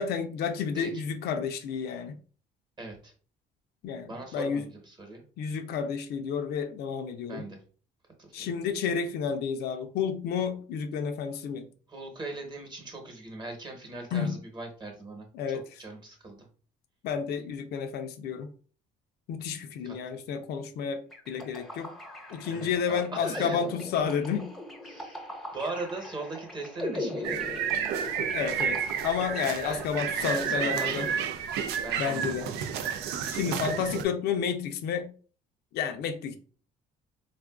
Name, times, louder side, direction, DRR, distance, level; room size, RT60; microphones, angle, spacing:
voice 1, 0.0-2.2 3.8-4.7 5.4-7.4 8.3-11.7 14.1-14.4 15.3-15.6 17.0-18.5 19.3-21.9 22.3-24.5 28.2-31.1 32.0-32.5 33.3-35.1 35.7-36.3, left 7 dB, 70° left, 0.5 m, -31 dB
voice 2, 2.8-3.1 4.1-5.2 7.3-7.6 8.2-8.5 11.9-16.5 19.8-20.0 22.5-23.6 24.9-25.2 25.5-27.4 29.6-29.8 30.2-31.2 31.8-32.6, right 2 dB, 25° right, 1.0 m, -40 dB
sound 1, 21.1-31.5, left 1 dB, ahead, 0.6 m, -40 dB
sound 2, 27.2-34.0, right 8 dB, 80° right, 0.4 m, -31 dB
3.6 x 2.4 x 2.3 m
cardioid pair, 110°, 17 cm